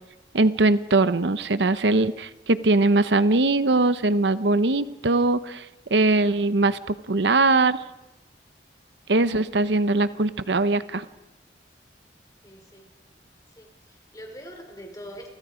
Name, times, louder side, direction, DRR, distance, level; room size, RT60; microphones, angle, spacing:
voice 1, 0.3-5.7 5.9-7.8 9.1-11.0, right 2 dB, 80° right, 14 dB, 0.9 m, -21 dB
voice 2, 12.4-12.9 13.6-15.3, equal, 20° left, 3 dB, 4.9 m, -43 dB
29.5 x 24.5 x 5.1 m, 1.0 s
head